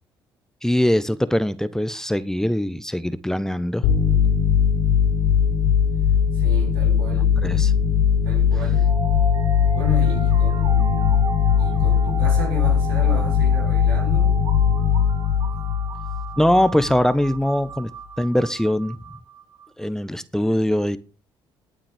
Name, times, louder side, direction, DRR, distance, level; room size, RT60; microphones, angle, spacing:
voice 1, 0.6-3.9 7.4-7.7 11.7-12.0 16.4-17.9 18.2-19.0 19.8-21.0, left 1 dB, 5° left, 1.0 m, -22 dB
sound 1, 3.8-17.0, left 7 dB, 80° left, 4.0 m, -19 dB
voice 2, 6.3-7.4 8.2-9.0 9.7-11.2 11.6-14.4, left 1 dB, 90° right, 4.0 m, -33 dB
sound 2, 8.7-19.7, right 3 dB, 45° right, 3.2 m, -36 dB
20.0 x 7.5 x 3.5 m
hypercardioid pair, 55°, 11 cm